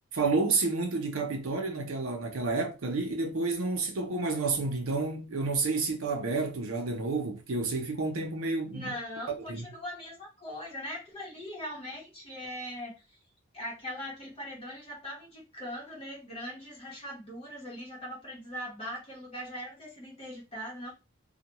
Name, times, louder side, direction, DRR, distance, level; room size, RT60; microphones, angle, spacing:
voice 1, 0.1-8.9 9.3-9.7, right 3 dB, 70° right, 0.6 m, -30 dB
voice 2, 8.7-13.2 13.5-20.9, equal, 25° left, 0.9 m, -40 dB
2.2 x 2.2 x 2.8 m
head